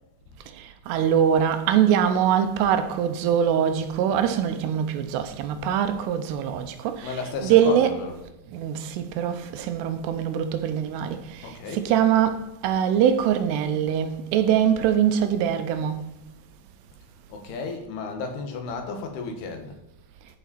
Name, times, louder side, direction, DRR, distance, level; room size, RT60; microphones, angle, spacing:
voice 1, 0.9-7.9 8.5-11.2 11.7-16.0, right 9 dB, 90° right, 2.9 m, -23 dB
voice 2, 7.0-8.2 11.4-11.9 17.3-19.7, left 4 dB, 80° left, 3.2 m, -33 dB
15.0 x 5.1 x 4.1 m
omnidirectional pair, 4.7 m